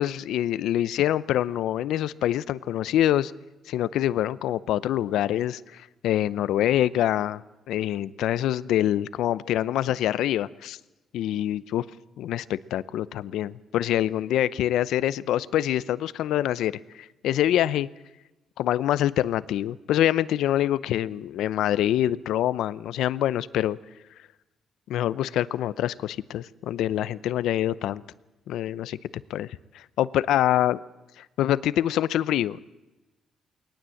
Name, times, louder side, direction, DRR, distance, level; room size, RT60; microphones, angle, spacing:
voice 1, 0.0-3.3 3.7-7.4 7.7-10.8 11.1-11.8 12.2-17.9 18.6-23.8 24.9-28.0 28.5-29.0 29.3-29.5 29.7-30.8 31.2-32.6, left 12 dB, 85° left, 17 dB, 0.7 m, -25 dB
21.0 x 19.0 x 7.8 m, 1.0 s
cardioid pair, 90°, 0 cm